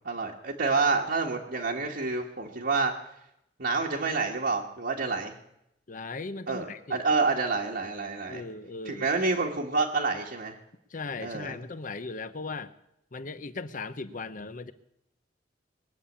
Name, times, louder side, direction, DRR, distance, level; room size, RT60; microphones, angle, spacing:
voice 1, 0.0-2.9 3.6-5.3 6.5-8.4 8.8-10.6 11.2-11.5, right 4 dB, 60° right, -3 dB, 1.5 m, -28 dB
voice 2, 5.9-7.0 8.3-9.1 10.9-12.7 13.1-14.7, left 3 dB, 50° left, 12 dB, 0.9 m, -38 dB
21.0 x 7.4 x 8.5 m, 0.81 s
head